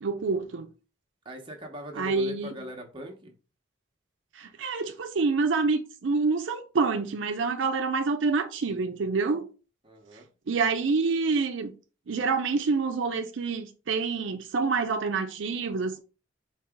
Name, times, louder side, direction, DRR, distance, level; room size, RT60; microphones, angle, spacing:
voice 1, 0.0-0.7 2.0-2.5 4.3-9.5 10.5-11.7 12.1-16.0, right 4 dB, 80° right, 0.5 m, -27 dB
voice 2, 1.2-3.3 9.8-10.3, right 2 dB, 25° right, 1.0 m, -40 dB
4.6 x 2.9 x 3.6 m
head